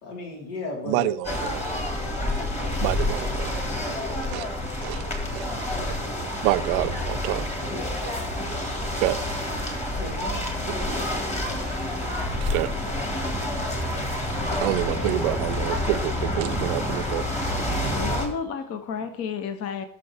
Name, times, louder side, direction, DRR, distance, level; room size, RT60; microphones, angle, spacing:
voice 1, 0.0-1.1 2.9-3.3 7.7-7.9 9.9-12.1 17.8-18.0, left 2 dB, 80° left, -1 dB, 3.9 m, -38 dB
voice 2, 0.9-1.6 2.8-3.5 4.3-4.4 4.8-5.0 5.3-5.4 6.4-7.5 9.0-9.2 12.4-12.7 14.6-17.2, right 17 dB, 75° right, 16 dB, 0.7 m, -27 dB
sound 1, 1.2-18.3, left 1 dB, 15° left, 1.8 m, -28 dB
voice 3, 17.9-19.9, left 6 dB, 35° left, 9 dB, 0.7 m, -31 dB
17.0 x 6.5 x 3.4 m, 0.71 s
cardioid pair, 150°, 44 cm